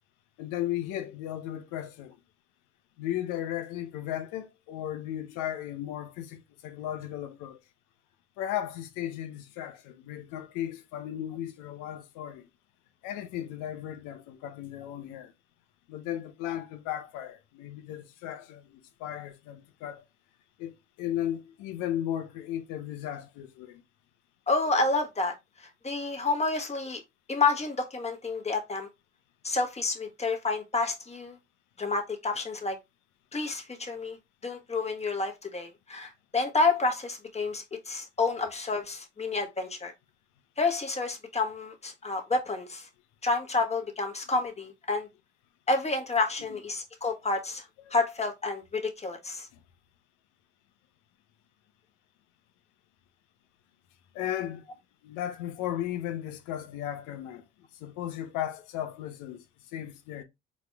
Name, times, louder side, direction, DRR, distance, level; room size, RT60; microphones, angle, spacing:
voice 1, 0.4-2.1 3.0-7.6 8.4-12.5 13.0-15.3 15.9-20.0 20.6-23.8 54.1-54.7 55.0-57.4 57.8-59.4 59.7-60.2, left 11 dB, 65° left, 0.9 m, -35 dB
voice 2, 24.5-27.0 27.3-28.9 29.4-31.4 31.8-32.8 33.3-34.2 34.4-39.9 40.6-42.9 43.2-45.1 45.7-47.6 47.9-49.5, left 3 dB, 20° left, 1.4 m, -29 dB
4.9 x 4.1 x 2.4 m
hypercardioid pair, 50°, 33 cm